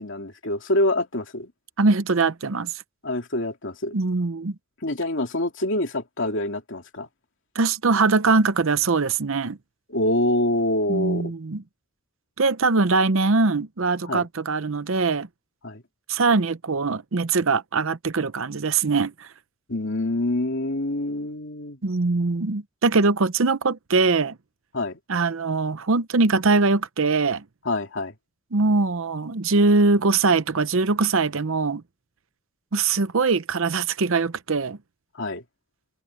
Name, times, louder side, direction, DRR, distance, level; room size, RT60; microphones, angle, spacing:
voice 1, 0.0-1.5 3.0-3.9 4.8-7.1 9.9-11.3 14.0-14.3 15.6-15.8 19.7-21.8 24.7-25.0 27.6-28.1 35.1-35.4, left 1 dB, 55° left, 2.9 m, -26 dB
voice 2, 1.8-2.8 3.9-4.5 7.5-9.6 10.9-11.6 12.4-15.3 16.1-19.3 21.8-24.4 25.1-27.4 28.5-31.8 32.7-34.8, right 3 dB, 60° right, 0.7 m, -22 dB
open air
head